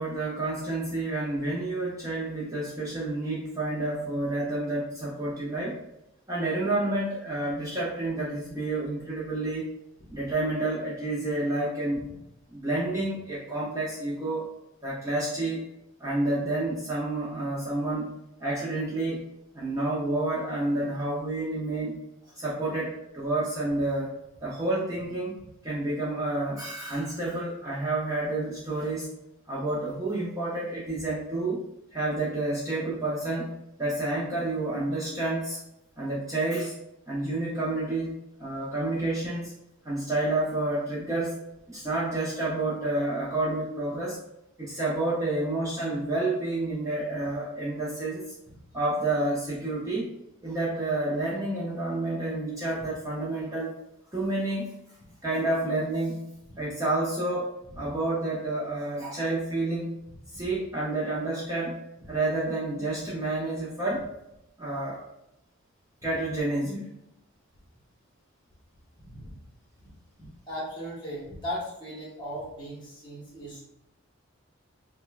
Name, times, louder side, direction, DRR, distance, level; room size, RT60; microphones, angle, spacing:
voice 1, 0.0-5.8 6.3-9.7 10.1-12.1 12.5-14.5 14.8-15.6 16.0-19.2 19.5-22.0 22.3-24.1 24.4-25.3 25.6-29.1 29.5-31.6 31.9-33.5 33.8-35.6 36.0-36.7 37.1-39.5 39.8-41.4 41.7-44.2 44.6-48.2 48.7-50.0 50.4-53.7 54.1-54.7 55.2-56.2 56.6-57.5 57.8-59.9 60.3-61.8 62.1-64.0 64.6-65.0 66.0-66.9, right 2 dB, 15° right, -7 dB, 0.6 m, -29 dB
voice 2, 69.0-69.3 70.2-73.6, equal, 20° left, -5 dB, 1.1 m, -37 dB
5.2 x 2.2 x 2.4 m, 0.84 s
head